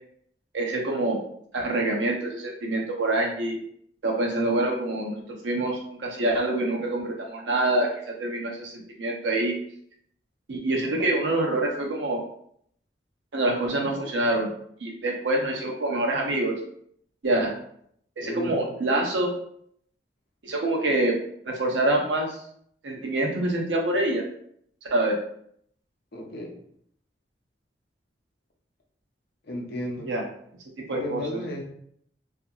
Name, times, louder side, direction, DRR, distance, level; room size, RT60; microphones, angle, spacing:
voice 1, 0.5-1.2 1.5-3.6 4.0-9.6 10.5-12.2 13.3-14.5 14.8-16.6 17.2-17.5 18.2-19.3 20.4-21.2 21.4-22.4 22.8-24.2 24.9-25.2 30.0-30.2 30.8-31.2, right 2 dB, 90° right, 0 dB, 0.6 m, -26 dB
voice 2, 18.2-18.7 26.1-26.5 29.4-30.1 30.9-31.6, left 1 dB, 60° left, 0 dB, 0.6 m, -34 dB
2.7 x 2.5 x 2.4 m, 0.67 s
head